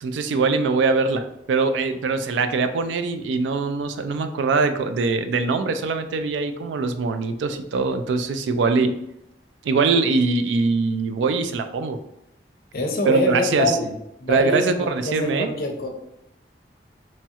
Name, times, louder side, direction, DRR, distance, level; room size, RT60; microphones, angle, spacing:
voice 1, 0.0-8.9 9.6-12.0 13.0-13.8 14.3-15.5, right 4 dB, 90° right, 9 dB, 0.3 m, -22 dB
voice 2, 12.7-13.9 14.2-15.9, left 2 dB, 55° left, 3 dB, 0.5 m, -25 dB
3.1 x 2.3 x 2.7 m, 0.83 s
head